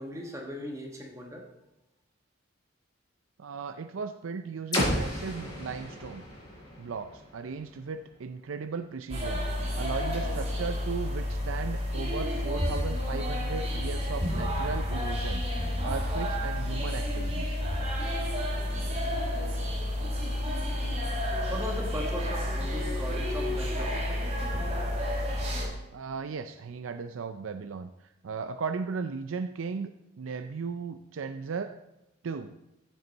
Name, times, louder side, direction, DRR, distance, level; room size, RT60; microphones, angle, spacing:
voice 1, 0.0-1.5 21.5-24.0, equal, 15° right, 1 dB, 1.2 m, -38 dB
voice 2, 3.4-6.2 6.8-9.4 9.8-15.5 15.8-17.6 25.9-29.9 30.2-31.8 32.2-32.5, right 5 dB, 85° right, 9 dB, 0.5 m, -36 dB
sound 1, 4.7-8.6, equal, 20° left, 5.0 m, -34 dB
sound 2, 9.1-25.7, left 1 dB, 35° right, 2.5 m, -30 dB
14.0 x 8.2 x 4.0 m, 0.92 s
head